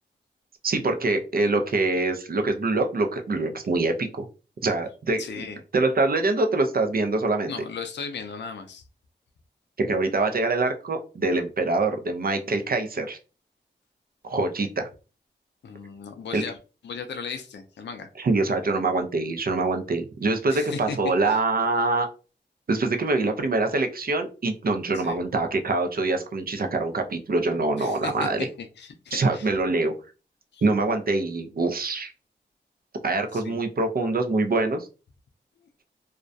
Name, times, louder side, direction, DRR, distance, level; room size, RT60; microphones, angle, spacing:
voice 1, 0.6-4.3 4.6-5.4 5.7-7.5 9.8-13.2 14.3-14.9 16.3-16.4 18.2-22.1 22.7-28.5 29.1-29.9 30.6-32.1 33.0-34.9, right 3 dB, 50° right, 5 dB, 0.5 m, -24 dB
voice 2, 5.2-5.6 7.5-8.8 15.6-16.6 16.8-18.1 20.5-21.0 21.2-21.4 24.9-25.2 27.8-28.3 28.6-29.5 30.5-30.6 33.3-33.6, left 5 dB, 70° left, 6 dB, 0.4 m, -36 dB
2.3 x 2.1 x 2.6 m, 0.34 s
cardioid pair, 45°, 19 cm